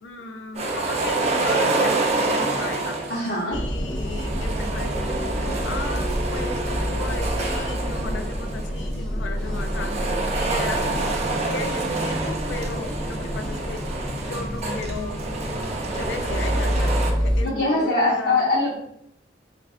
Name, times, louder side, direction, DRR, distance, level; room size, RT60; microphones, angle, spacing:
voice 1, 0.0-3.0 3.5-10.0 10.3-15.2 15.8-18.4, left 3 dB, 85° left, 6 dB, 0.4 m, -35 dB
sound 1, 0.5-3.4 4.0-8.8 9.4-17.1, right 3 dB, 35° right, 0.5 m, -27 dB
voice 2, 3.1-3.6 17.4-18.7, left 2 dB, 60° left, -7 dB, 0.8 m, -22 dB
sound 2, 3.5-17.4, equal, 20° left, 0.7 m, -28 dB
3.1 x 2.5 x 3.6 m, 0.73 s
head